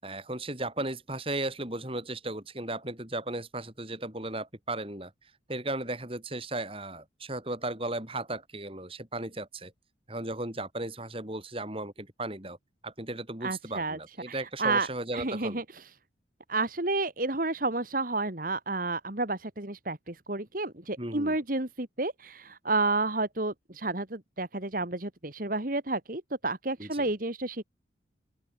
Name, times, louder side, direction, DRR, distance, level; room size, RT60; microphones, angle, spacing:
voice 1, 0.0-5.1 5.5-9.7 10.1-12.6 12.8-15.6 21.0-21.4 26.8-27.1, right 2 dB, 30° right, 5.2 m, -35 dB
voice 2, 13.4-14.0 14.3-14.9 15.1-15.9 16.5-27.6, right 2 dB, 45° right, 2.1 m, -31 dB
open air
head